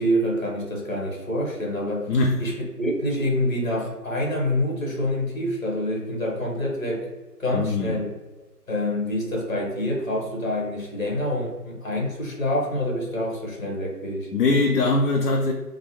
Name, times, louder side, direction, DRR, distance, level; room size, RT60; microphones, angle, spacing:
voice 1, 0.0-2.1 2.4-7.1 7.4-8.1 8.7-14.3, left 1 dB, 55° left, -1 dB, 1.1 m, -26 dB
voice 2, 2.1-2.5 7.5-8.0 14.3-15.5, left 3 dB, 70° left, 2 dB, 0.5 m, -22 dB
3.1 x 2.1 x 2.9 m, 1.2 s
figure-of-eight pair, 170°, 49 cm